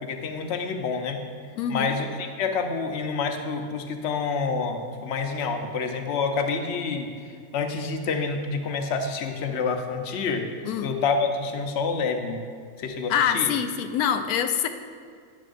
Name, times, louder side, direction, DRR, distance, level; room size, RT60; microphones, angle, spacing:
voice 1, 0.0-1.2 1.7-7.1 7.5-10.5 10.8-12.4 12.8-13.5, left 4 dB, 55° left, 5 dB, 0.9 m, -28 dB
voice 2, 1.6-2.0 10.6-10.9 13.1-14.7, left 8 dB, 90° left, 8 dB, 1.1 m, -25 dB
11.0 x 9.3 x 2.6 m, 2.1 s
omnidirectional pair, 1.5 m